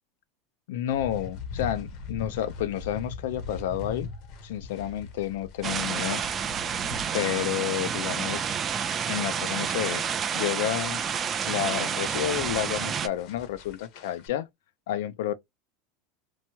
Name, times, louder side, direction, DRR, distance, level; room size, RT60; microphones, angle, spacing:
voice 1, 0.7-4.1 4.4-6.2 7.1-8.5 9.1-10.0 10.3-11.0 11.5-14.5 14.9-15.3, left 12 dB, 90° left, 0.4 m, -30 dB
sound 1, 0.9-14.3, left 4 dB, 55° left, 0.7 m, -42 dB
sound 2, 5.6-13.1, right 7 dB, 25° right, 0.4 m, -29 dB
2.9 x 2.2 x 2.8 m
supercardioid pair, 150°, 0 cm